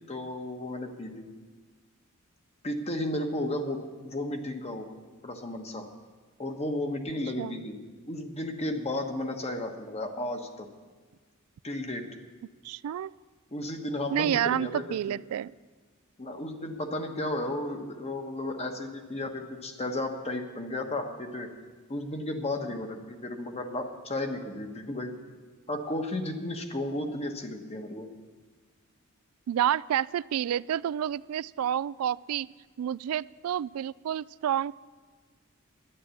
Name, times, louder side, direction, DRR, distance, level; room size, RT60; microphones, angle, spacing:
voice 1, 0.1-1.3 2.6-4.9 5.2-5.9 6.4-7.8 8.1-10.7 11.6-12.1 13.5-15.2 16.2-21.5 21.9-25.2 25.7-28.1, left 1 dB, 30° left, 4 dB, 1.3 m, -33 dB
voice 2, 12.6-13.1 14.1-15.5 29.5-32.5 32.8-34.7, right 10 dB, 80° right, 21 dB, 0.3 m, -29 dB
11.0 x 10.5 x 8.4 m, 1.4 s
head